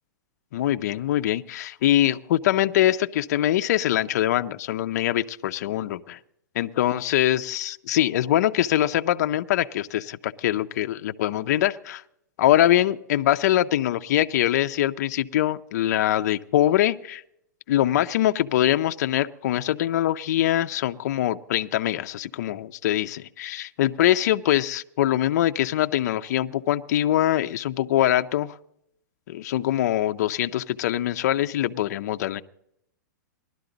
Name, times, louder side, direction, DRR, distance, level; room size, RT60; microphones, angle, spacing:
voice 1, 0.5-6.2 6.5-12.0 12.4-17.2 17.7-28.5 29.3-32.4, left 13 dB, 60° left, 8 dB, 0.6 m, -23 dB
20.0 x 12.5 x 4.0 m, 0.72 s
hypercardioid pair, 150°, 10 cm